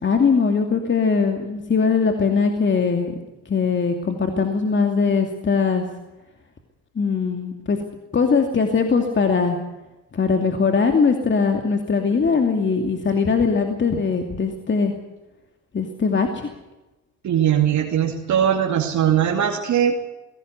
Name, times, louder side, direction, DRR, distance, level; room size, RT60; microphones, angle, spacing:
voice 1, 0.0-3.2 3.5-5.9 7.0-7.8 8.1-9.6 10.1-14.9 15.7-16.5, left 5 dB, 40° left, 4 dB, 2.6 m, -20 dB
voice 2, 17.2-20.0, right 9 dB, 70° right, 1 dB, 2.7 m, -20 dB
21.0 x 17.5 x 8.1 m, 1.0 s
cardioid pair, 90°, 30 cm